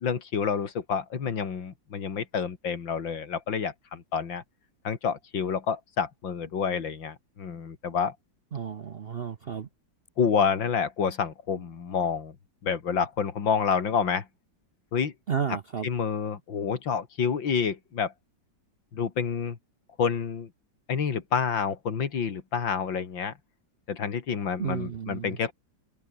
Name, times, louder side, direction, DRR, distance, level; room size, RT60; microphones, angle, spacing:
voice 1, 0.0-4.4 4.8-8.1 10.2-12.3 12.6-14.2 14.9-15.1 15.8-18.1 18.9-19.6 20.0-20.5 20.9-23.3 23.9-25.5, left 6 dB, 85° left, 2.9 m, -28 dB
voice 2, 8.5-9.7 15.3-15.9 24.6-25.4, right 7 dB, 55° right, 0.6 m, -32 dB
open air
omnidirectional pair, 2.0 m